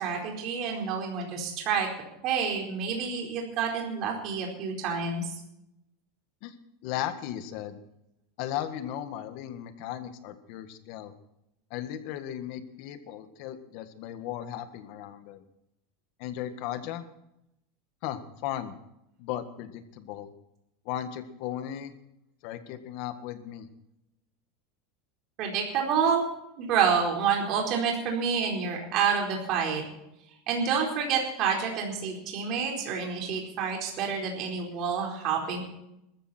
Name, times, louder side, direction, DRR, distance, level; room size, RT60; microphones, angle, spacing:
voice 1, 0.0-1.9 2.2-5.3 25.4-26.2 26.6-29.8 30.5-35.6, right 6 dB, 40° right, 0 dB, 4.4 m, -28 dB
voice 2, 6.8-7.8 8.4-11.1 11.7-15.4 16.2-17.1 18.0-18.7 19.2-20.3 20.8-21.9 22.4-23.7, left 11 dB, 55° left, 10 dB, 1.6 m, -36 dB
20.5 x 14.0 x 4.4 m, 0.84 s
supercardioid pair, 155°, 0 cm